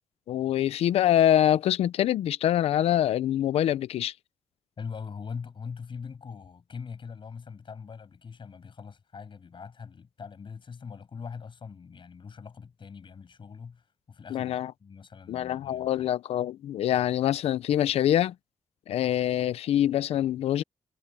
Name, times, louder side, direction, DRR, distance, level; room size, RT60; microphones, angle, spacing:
voice 1, 0.3-4.1 14.3-14.7 15.3-18.3 18.9-20.6, left 11 dB, 90° left, 0.7 m, -25 dB
voice 2, 4.8-16.1, left 6 dB, 55° left, 7.7 m, -42 dB
cardioid pair, 65°, 10 cm